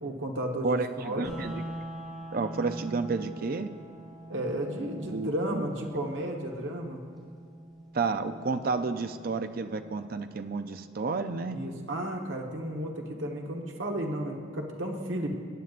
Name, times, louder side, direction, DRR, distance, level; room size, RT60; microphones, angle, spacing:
voice 1, 0.0-1.3 4.3-7.0 11.5-15.4, right 1 dB, 75° right, 1 dB, 1.3 m, -33 dB
voice 2, 0.6-1.5 2.3-3.7 5.0-5.6 7.9-11.6, right 4 dB, 50° right, 9 dB, 0.5 m, -31 dB
sound 1, 1.2-11.2, right 1 dB, ahead, 3.0 m, -44 dB
18.5 x 9.3 x 2.5 m, 2.2 s
head